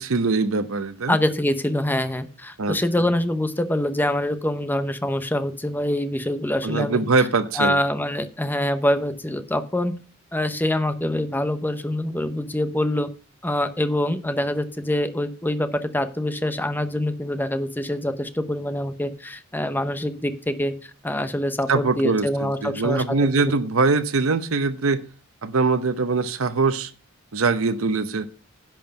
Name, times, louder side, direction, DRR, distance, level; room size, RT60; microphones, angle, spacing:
voice 1, 0.0-1.2 2.6-2.8 6.6-7.8 21.7-25.0 25.4-26.9 27.3-28.3, right 4 dB, 75° right, 0.8 m, -22 dB
voice 2, 1.1-7.0 7.5-9.9 10.3-13.1 13.4-23.5, left 1 dB, 10° left, 0.9 m, -25 dB
11.0 x 4.5 x 7.5 m
head